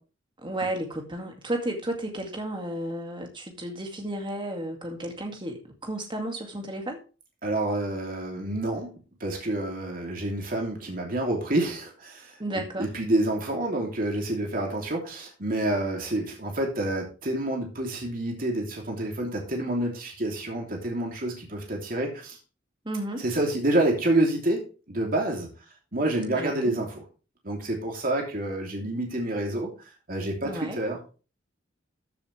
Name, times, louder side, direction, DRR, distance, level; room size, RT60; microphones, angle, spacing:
voice 1, 0.4-7.0 12.4-12.9 22.8-23.2 26.3-26.7 30.4-30.8, right 1 dB, 25° right, 3 dB, 2.2 m, -33 dB
voice 2, 7.4-12.3 12.8-22.4 23.2-25.5 25.9-26.9 27.4-29.7 30.1-31.0, right 1 dB, 50° right, 0 dB, 3.0 m, -28 dB
14.0 x 7.1 x 3.3 m, 0.35 s
head